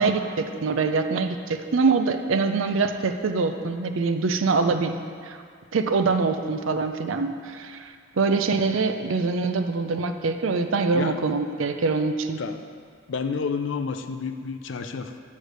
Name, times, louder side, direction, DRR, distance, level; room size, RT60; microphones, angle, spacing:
voice 1, 0.0-5.0 5.2-5.4 5.7-7.9 8.2-12.4, right 4 dB, 70° right, 7 dB, 0.4 m, -24 dB
voice 2, 13.1-15.2, left 5 dB, 60° left, 8 dB, 0.4 m, -30 dB
9.2 x 3.2 x 6.5 m, 2.1 s
head